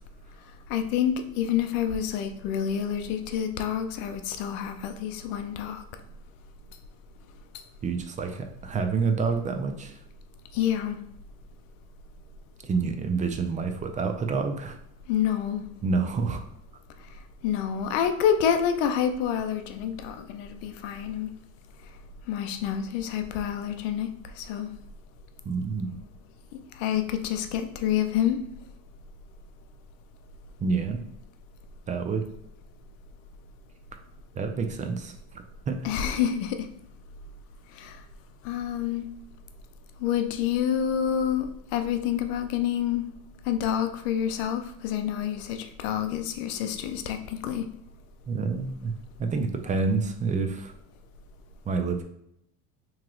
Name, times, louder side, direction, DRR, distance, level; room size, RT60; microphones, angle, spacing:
voice 1, 0.7-5.8 10.5-11.0 15.1-15.6 17.4-21.3 22.3-24.1 24.4-24.7 26.8-28.4 35.8-36.7 37.8-38.0 38.4-39.0 40.0-43.0 43.5-47.6, left 9 dB, 75° left, 7 dB, 0.6 m, -28 dB
voice 2, 7.8-10.0 12.6-14.8 15.8-16.4 25.4-25.9 30.6-31.0 31.9-32.2 34.3-35.8 48.3-48.9 49.2-50.7 51.7-52.0, right 4 dB, 20° right, 6 dB, 0.4 m, -28 dB
3.1 x 2.8 x 3.7 m, 0.75 s
supercardioid pair, 115°, 39 cm